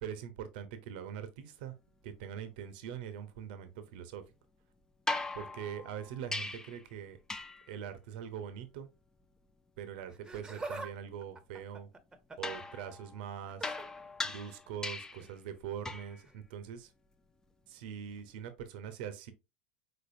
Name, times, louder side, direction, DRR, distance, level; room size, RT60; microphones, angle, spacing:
voice 1, 0.0-1.7 2.0-4.2 5.3-7.2 7.7-8.9 9.8-11.9 12.4-13.8 14.2-16.9 17.7-19.3, right 8 dB, 65° right, 0.8 m, -43 dB
sound 1, 5.1-6.8 7.3-7.7 12.4-15.3 15.8-16.2 18.2-18.3, left 2 dB, 10° left, 0.5 m, -39 dB
Laughter, 10.1-10.9 11.2-12.6 13.5-13.9 15.2-15.3 16.3-16.4, right 3 dB, 15° right, 0.9 m, -44 dB
5.2 x 3.9 x 2.6 m
hypercardioid pair, 90°, 6 cm